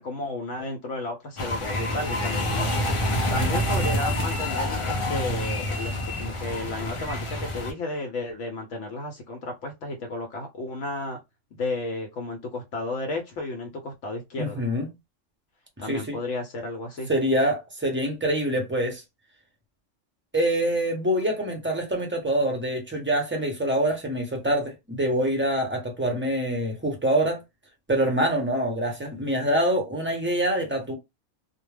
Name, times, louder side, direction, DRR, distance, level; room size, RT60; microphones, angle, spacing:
voice 1, 0.0-2.7 3.3-11.2 11.5-14.6 15.8-17.1, left 2 dB, 70° left, 0.9 m, -33 dB
sound 1, 1.4-7.7, left 1 dB, 45° left, 0.4 m, -27 dB
voice 2, 14.4-14.9 15.8-16.2 17.1-19.0 20.3-27.4 27.9-30.9, right 1 dB, 15° right, 0.4 m, -25 dB
2.2 x 2.1 x 3.2 m
omnidirectional pair, 1.3 m